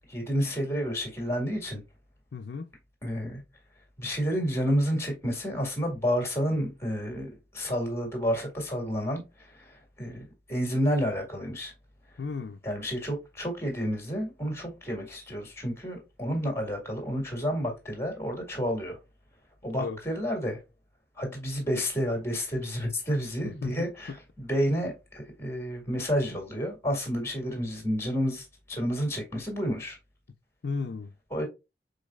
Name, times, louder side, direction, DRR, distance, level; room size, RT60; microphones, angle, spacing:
voice 1, 0.1-1.8 3.0-3.4 4.0-11.7 12.1-12.2 12.6-19.0 19.6-20.6 21.2-30.0 31.3-31.5, equal, 15° left, 1.8 m, -30 dB
voice 2, 2.3-2.7 12.2-12.6 19.7-20.0 23.4-23.9 30.6-31.1, left 4 dB, 60° left, 0.4 m, -34 dB
5.2 x 3.9 x 2.4 m
head